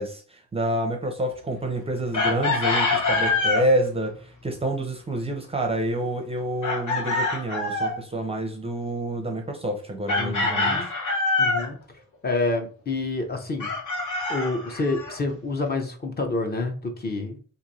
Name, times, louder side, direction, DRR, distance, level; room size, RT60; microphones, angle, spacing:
voice 1, 0.0-10.9, right 1 dB, 20° right, 3 dB, 0.5 m, -28 dB
Chicken rooster, 2.1-3.7 6.6-8.0 10.1-11.7 13.6-15.2, left 3 dB, 70° left, 1.2 m, -25 dB
voice 2, 10.2-10.9 11.4-11.8 12.2-13.7 14.3-17.4, left 3 dB, 30° left, 4 dB, 0.6 m, -28 dB
3.0 x 2.6 x 3.9 m, 0.40 s
wide cardioid pair, 150°, 30 cm